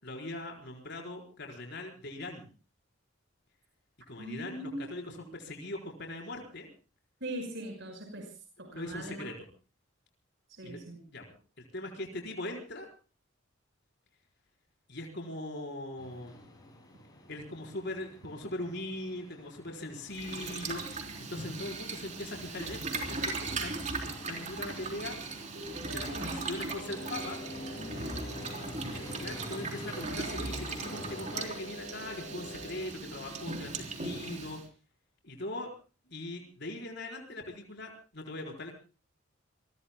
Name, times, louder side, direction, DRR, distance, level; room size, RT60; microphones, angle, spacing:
voice 1, 0.0-2.5 4.1-6.7 8.7-9.3 10.6-10.8 11.1-11.2 11.6-12.9 14.9-16.4 17.3-20.9 21.3-23.8 24.0-25.2 25.9-27.4 28.9-34.6 35.2-35.7 36.1-38.7, left 1 dB, 60° left, 1 dB, 4.6 m, -40 dB
voice 2, 4.2-5.3 7.2-8.3 8.6-9.3 10.5-11.0 26.1-26.4, right 1 dB, 60° right, 3 dB, 5.5 m, -41 dB
sound 1, 16.0-31.5, equal, 20° left, 7.0 m, -47 dB
Boiling, 20.1-34.6, right 3 dB, 35° right, 3.8 m, -38 dB
sound 2, 25.6-26.2 26.7-28.7 29.7-30.3 30.8-32.8, left 1 dB, 80° right, 7.5 m, -47 dB
27.5 x 22.5 x 2.2 m, 0.35 s
head